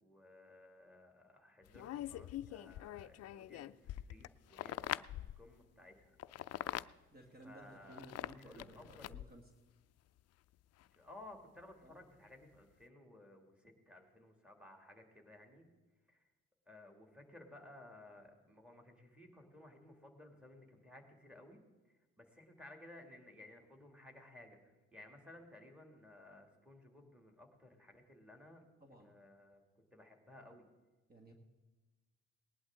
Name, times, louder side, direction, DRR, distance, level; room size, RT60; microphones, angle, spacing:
voice 1, 0.0-6.2 7.4-8.1 8.3-9.1 11.0-15.7 16.1-16.2 16.7-21.6 22.2-28.6 29.0-29.6 29.9-30.7, left 1 dB, 5° right, 3 dB, 2.5 m, -58 dB
sound 1, 1.6-5.5 6.2-6.9 7.9-9.4 10.8-10.9, left 13 dB, 55° left, 0.4 m, -44 dB
voice 2, 7.1-9.5 11.8-12.0 28.8-29.2 31.1-31.3, right 1 dB, 30° right, 3 dB, 1.7 m, -57 dB
19.0 x 11.0 x 3.8 m, 1.2 s
cardioid pair, 90°, 30 cm